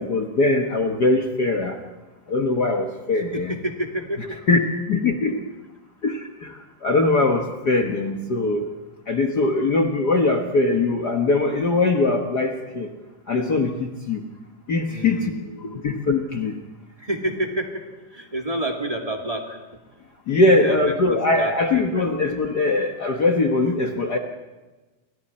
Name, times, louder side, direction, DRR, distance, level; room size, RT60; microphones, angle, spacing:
voice 1, 0.0-1.8 2.3-3.6 4.5-4.6 4.9-5.4 6.0-8.7 9.1-12.9 13.3-14.2 14.7-15.3 15.8-16.6 20.3-24.2, left 2 dB, 75° left, 3 dB, 0.9 m, -21 dB
voice 2, 3.2-4.4 14.9-15.9 17.0-19.6 20.3-22.1, right 1 dB, 15° right, 2 dB, 1.7 m, -30 dB
29.0 x 24.0 x 4.3 m, 1.2 s
omnidirectional pair, 3.8 m